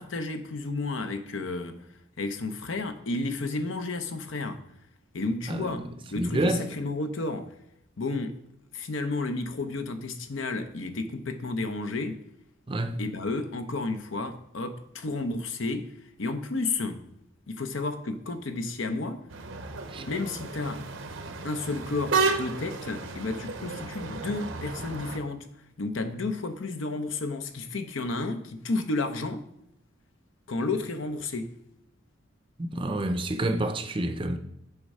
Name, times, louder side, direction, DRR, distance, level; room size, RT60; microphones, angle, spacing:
voice 1, 0.0-1.8 2.2-4.6 5.1-7.5 8.0-8.4 8.7-12.2 13.0-17.0 17.5-19.2 20.1-20.9 21.4-25.5 25.8-29.5 30.5-31.6, left 3 dB, 70° left, 0.7 m, -32 dB
voice 2, 6.2-6.6 12.7-13.0 19.9-20.1 32.6-34.4, right 1 dB, 25° right, 0.5 m, -28 dB
sound 1, 19.3-25.2, right 4 dB, 75° right, 0.8 m, -32 dB
8.0 x 3.6 x 5.4 m
head